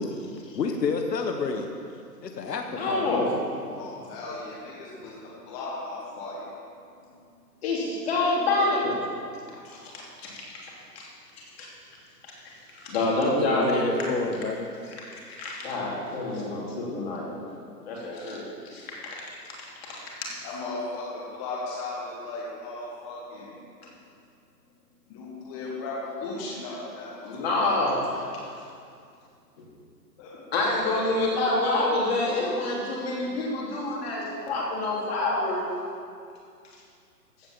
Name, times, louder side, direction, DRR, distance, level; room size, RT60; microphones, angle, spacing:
voice 1, 0.0-1.8 2.2-3.1 13.2-14.7, left 4 dB, 75° left, 4 dB, 1.2 m, -29 dB
voice 2, 2.7-3.3 7.6-8.9 9.6-9.8 10.2-11.1 11.6-11.7 12.4-13.8 15.1-17.4 17.9-18.4 18.7-19.2 20.2-20.3 27.2-28.1 30.5-35.6, left 2 dB, 40° left, -4 dB, 3.2 m, -27 dB
voice 3, 3.6-7.6 20.4-23.7 24.6-27.4 30.2-31.4, left 2 dB, 20° left, -5 dB, 1.3 m, -37 dB
15.0 x 5.1 x 7.6 m, 2.4 s
hypercardioid pair, 150°, 49 cm